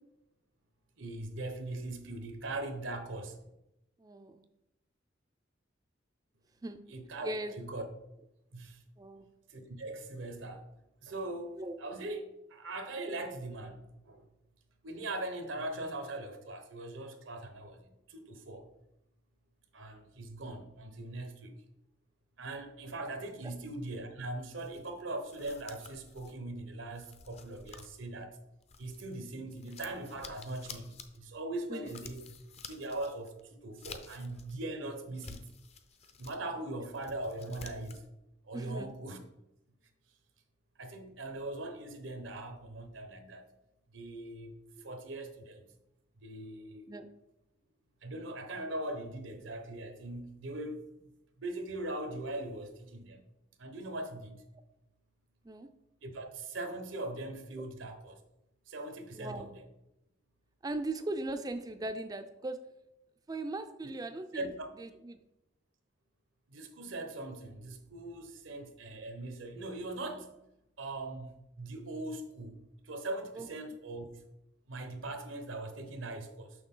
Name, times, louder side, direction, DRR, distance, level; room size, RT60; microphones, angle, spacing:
voice 1, 1.0-3.4 6.9-7.3 7.6-7.9 8.5-8.8 9.5-10.6 11.0-12.2 12.5-14.2 14.8-18.6 19.7-21.5 22.4-28.3 28.8-32.2 32.6-35.4 36.2-38.0 38.5-39.2 40.8-43.5 43.9-44.5 44.8-45.6 46.2-46.9 48.0-50.8 51.4-53.2 53.6-54.4 56.0-58.2 58.7-59.6 64.3-64.7 66.5-70.3 70.8-72.6 72.9-74.1 74.7-76.5, right 2 dB, 90° right, 6 dB, 1.0 m, -40 dB
voice 2, 4.0-4.4 6.6-6.8 7.2-7.6 9.0-9.3 11.6-11.8 23.4-23.5 31.7-31.9 36.4-36.5 38.5-38.9 44.8-44.9 46.9-47.1 55.4-55.7 59.1-59.5 60.6-62.6 63.3-65.2 73.3-73.5, right 2 dB, 20° right, 8 dB, 0.3 m, -39 dB
sound 1, 24.6-29.2 29.5-34.6 35.0-36.4 36.8-38.1, left 5 dB, 35° left, 0.5 m, -51 dB
6.3 x 5.9 x 3.8 m, 0.90 s
head